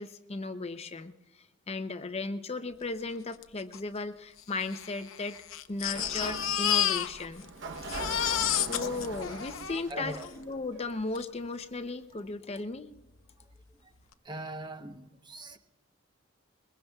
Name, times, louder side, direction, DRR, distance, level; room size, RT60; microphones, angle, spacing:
voice 1, 0.0-5.4 5.7-7.5 7.8-8.0 8.2-12.9, left 3 dB, 30° left, 0.6 m, -36 dB
Crying sobbing, 3.4-3.5 3.7-3.8 4.6-7.5 7.7-10.3 11.1-11.2 11.6-11.7, left 10 dB, 90° left, 0.8 m, -31 dB
Sliding door, 5.7-11.4, right 3 dB, 65° right, 0.9 m, -42 dB
voice 2, 9.9-10.3 14.2-15.6, right 1 dB, 20° right, 0.9 m, -41 dB
22.0 x 21.5 x 2.3 m
head